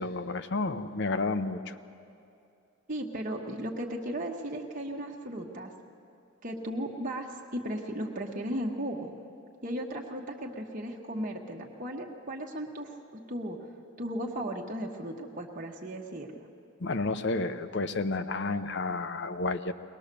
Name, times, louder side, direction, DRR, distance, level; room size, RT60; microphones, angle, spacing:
voice 1, 0.0-1.7 16.8-19.7, left 3 dB, 55° left, 11 dB, 0.8 m, -31 dB
voice 2, 2.9-5.7 6.4-9.1 9.6-13.6 14.0-16.5, right 1 dB, 40° right, 0 dB, 1.2 m, -36 dB
22.5 x 19.5 x 6.8 m, 2.5 s
head